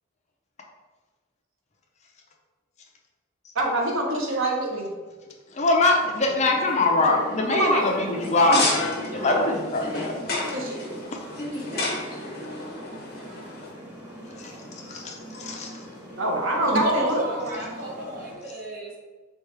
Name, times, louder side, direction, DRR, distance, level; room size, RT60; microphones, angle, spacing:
voice 1, 3.5-4.9 7.5-7.9 10.5-10.8 16.2-17.2, right 1 dB, 75° right, -1 dB, 0.9 m, -24 dB
voice 2, 5.5-10.4 14.9-15.7, left 2 dB, 35° left, 1 dB, 0.6 m, -23 dB
sound 1, 6.0-18.3, equal, 10° right, 1.2 m, -39 dB
sound 2, 8.2-13.7, left 2 dB, 50° left, 1.0 m, -32 dB
voice 3, 16.7-19.0, right 1 dB, 45° right, -2 dB, 1.0 m, -31 dB
4.4 x 3.4 x 3.3 m, 1.3 s
head